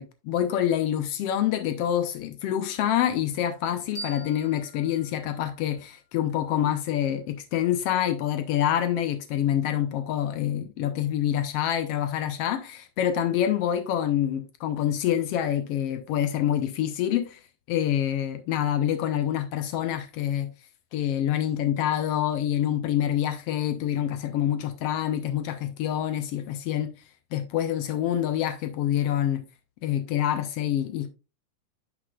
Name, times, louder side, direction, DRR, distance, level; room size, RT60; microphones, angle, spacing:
voice 1, 0.0-17.4 17.7-20.5 20.9-26.9 27.3-29.4 29.8-31.1, left 11 dB, 85° left, 1.3 m, -26 dB
sound 1, 3.9-6.7, right 2 dB, 50° left, 3.3 m, -44 dB
10.0 x 6.6 x 2.3 m
omnidirectional pair, 3.7 m